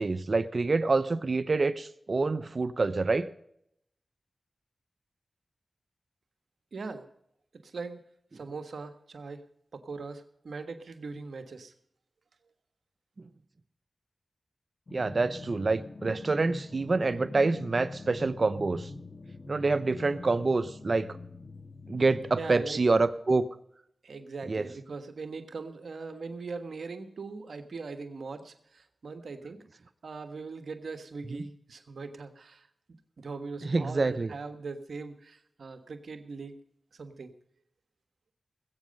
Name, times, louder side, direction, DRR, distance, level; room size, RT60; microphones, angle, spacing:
voice 1, 0.0-3.3 14.9-18.9 19.5-21.1 21.9-23.5 24.5-24.7 31.3-31.4 33.6-34.3, right 3 dB, 55° right, 14 dB, 0.8 m, -27 dB
voice 2, 6.7-7.1 7.6-8.0 8.3-9.4 9.7-11.7 22.3-22.8 24.0-32.7 33.2-36.6 36.9-37.3, right 4 dB, 80° right, 9 dB, 1.3 m, -40 dB
sound 1, 14.9-23.2, left 2 dB, 55° left, 1.5 m, -44 dB
20.5 x 8.6 x 5.3 m, 0.73 s
cardioid pair, 45°, 0 cm